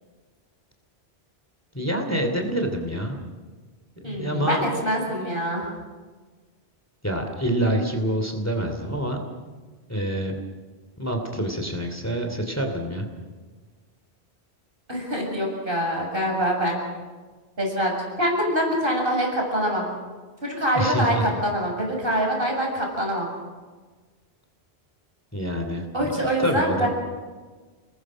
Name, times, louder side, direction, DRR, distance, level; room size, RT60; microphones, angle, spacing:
voice 1, 1.7-3.2 4.0-4.8 5.2-5.3 7.0-9.2 9.9-10.3 11.0-13.1 20.7-21.4 25.3-26.9, right 1 dB, 15° left, 3 dB, 2.9 m, -27 dB
voice 2, 4.0-5.7 14.9-16.8 17.6-17.9 18.2-19.9 20.4-23.3 25.9-26.9, equal, 60° right, 0 dB, 7.3 m, -24 dB
30.0 x 20.0 x 6.3 m, 1.4 s
omnidirectional pair, 1.1 m